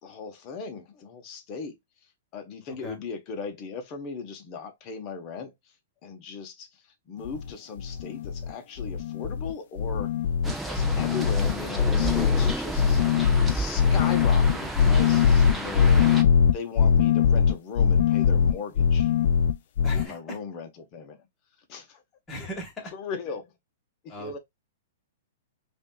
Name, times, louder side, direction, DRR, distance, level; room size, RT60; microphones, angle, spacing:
voice 1, 0.0-1.7 2.3-5.5 6.0-6.7 7.1-10.1 10.6-13.0 13.5-16.0 16.5-19.1 19.9-21.2 21.7-22.0 22.9-23.5 24.0-24.4, left 5 dB, 30° left, 1.1 m, -38 dB
voice 2, 2.7-3.0 19.8-20.4 22.3-22.9 24.1-24.3, left 1 dB, 15° left, 1.6 m, -38 dB
sound 1, 7.2-7.5 7.8-8.5 8.8-9.5 9.8-20.0, left 7 dB, 60° left, 0.4 m, -21 dB
sound 2, 10.4-16.2, right 2 dB, 5° right, 0.7 m, -33 dB
5.1 x 2.7 x 2.3 m
hypercardioid pair, 160°, 0 cm